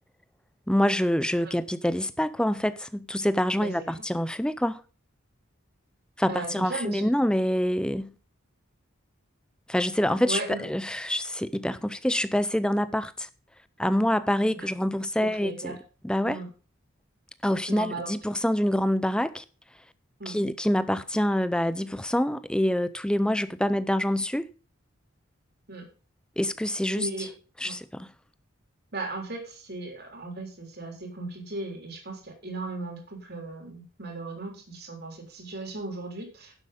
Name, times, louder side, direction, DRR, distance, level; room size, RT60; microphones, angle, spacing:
voice 1, 0.7-4.8 6.2-8.1 9.7-13.3 13.8-15.8 16.0-16.4 17.4-19.4 20.3-24.5 26.4-27.1 27.6-28.1, left 1 dB, 5° left, 0.5 m, -26 dB
voice 2, 6.2-7.1 10.3-10.6 14.5-14.7 15.2-15.8 16.3-16.5 17.7-18.1 20.2-20.4 25.7-25.9 26.9-27.3 27.6-27.8 28.9-36.5, right 2 dB, 50° right, 3.6 m, -36 dB
11.0 x 7.8 x 5.1 m
head